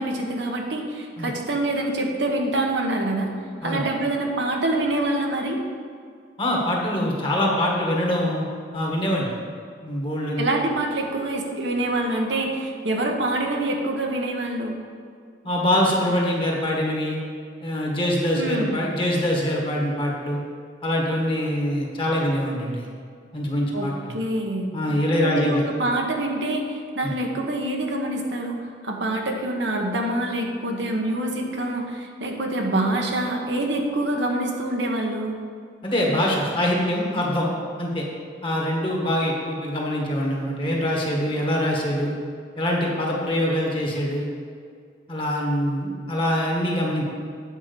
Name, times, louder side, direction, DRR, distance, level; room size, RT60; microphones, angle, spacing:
voice 1, 0.0-3.3 3.6-5.6 10.4-14.8 18.3-18.8 23.7-24.7 25.2-35.4, right 1 dB, 75° right, 1 dB, 1.2 m, -26 dB
voice 2, 6.4-8.5 8.7-9.3 9.8-10.4 15.4-17.2 17.6-20.4 20.8-22.9 23.3-24.2 24.7-25.6 27.0-27.1 35.8-37.5 37.8-38.0 38.4-42.1 42.6-44.3 45.1-47.0, left 1 dB, 30° left, -2 dB, 1.7 m, -24 dB
8.9 x 5.1 x 6.8 m, 2.1 s
head